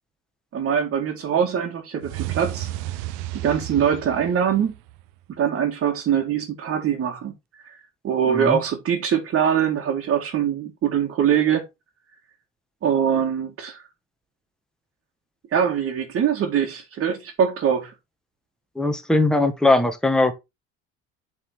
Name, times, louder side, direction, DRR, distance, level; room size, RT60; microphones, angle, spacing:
voice 1, 0.5-2.7 3.3-4.7 5.4-7.3 8.0-11.6 12.8-13.8 15.5-17.9, right 8 dB, 45° right, 2.1 m, -23 dB
sound 1, 2.0-5.2, right 14 dB, 90° right, 0.7 m, -33 dB
voice 2, 8.3-8.6 18.7-20.3, left 2 dB, ahead, 1.4 m, -20 dB
8.2 x 4.2 x 4.5 m
cardioid pair, 110°, 29 cm